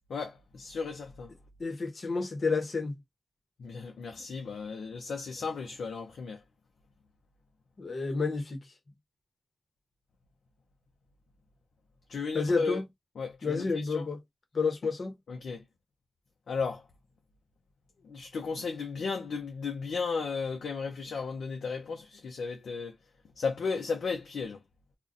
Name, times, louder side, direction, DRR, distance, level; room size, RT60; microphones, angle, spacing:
voice 1, 0.1-1.3 3.6-6.4 12.1-12.8 13.2-14.1 15.3-15.6 16.5-16.8 18.0-23.0 23.4-24.6, left 5 dB, 90° left, 0.5 m, -35 dB
voice 2, 1.6-3.0 7.8-8.6 12.3-12.8 13.4-14.2 14.5-15.1, left 4 dB, 65° left, 0.9 m, -30 dB
2.4 x 2.2 x 3.7 m
cardioid pair, 45°, 0 cm